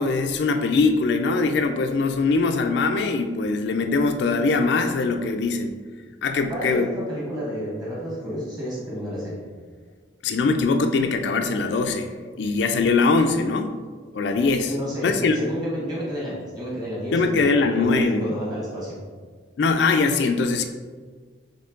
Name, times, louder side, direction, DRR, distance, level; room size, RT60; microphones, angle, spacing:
voice 1, 0.0-5.8 6.2-6.9 10.2-12.1 12.4-13.8 14.1-14.7 15.0-15.4 17.1-18.3 19.6-20.6, left 3 dB, 65° left, 6 dB, 0.3 m, -22 dB
voice 2, 6.5-9.4 14.6-19.0, equal, 20° right, -6 dB, 1.5 m, -30 dB
4.4 x 3.2 x 3.7 m, 1.5 s
head